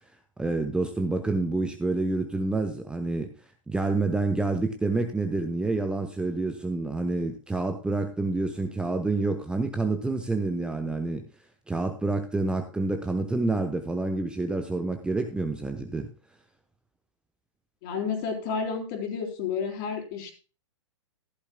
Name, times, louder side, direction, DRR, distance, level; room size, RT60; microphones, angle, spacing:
voice 1, 0.4-3.3 3.7-11.2 11.7-16.1, right 3 dB, 5° right, 6 dB, 0.9 m, -28 dB
voice 2, 17.8-20.3, left 5 dB, 40° left, 4 dB, 3.8 m, -31 dB
15.0 x 11.5 x 2.2 m, 0.36 s
figure-of-eight pair, 110°, 16 cm